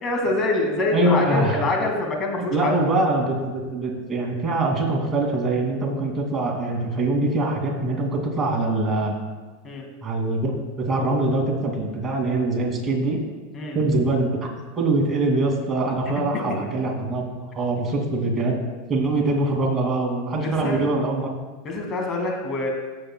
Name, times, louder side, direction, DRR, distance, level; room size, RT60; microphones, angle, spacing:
voice 1, 0.0-2.7 9.6-9.8 13.5-13.8 16.5-16.6 20.4-20.8 21.6-22.7, left 2 dB, 35° left, 1 dB, 2.4 m, -25 dB
voice 2, 0.9-1.6 2.5-9.2 10.0-10.5 10.8-13.2 13.7-14.4 14.8-17.3 17.5-18.6 18.9-21.3, right 2 dB, 25° right, 0 dB, 2.7 m, -23 dB
15.5 x 7.8 x 2.4 m, 1.3 s
hypercardioid pair, 95°, 0 cm